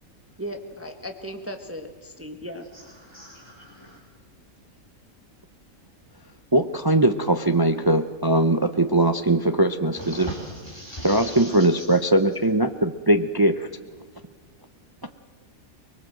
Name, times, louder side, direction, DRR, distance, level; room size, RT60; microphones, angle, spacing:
voice 1, 0.4-2.7, equal, 10° right, 4 dB, 1.2 m, -36 dB
voice 2, 2.7-4.0 9.9-11.9, equal, 20° left, -1 dB, 2.7 m, -39 dB
voice 3, 6.5-10.3 11.0-13.7, right 1 dB, 25° right, 8 dB, 0.5 m, -20 dB
24.0 x 20.5 x 7.7 m, 1.5 s
omnidirectional pair, 1.5 m